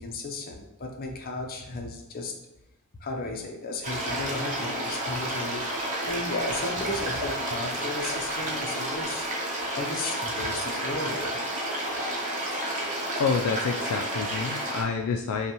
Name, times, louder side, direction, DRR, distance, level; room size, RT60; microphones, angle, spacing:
voice 1, 0.0-2.3 3.0-9.3 9.8-11.4, left 2 dB, 40° left, 2 dB, 0.6 m, -34 dB
sound 1, 3.8-14.8, right 1 dB, 35° right, 0.9 m, -31 dB
voice 2, 13.2-15.5, left 5 dB, 70° left, 3 dB, 0.3 m, -28 dB
5.4 x 2.2 x 3.0 m, 0.92 s
head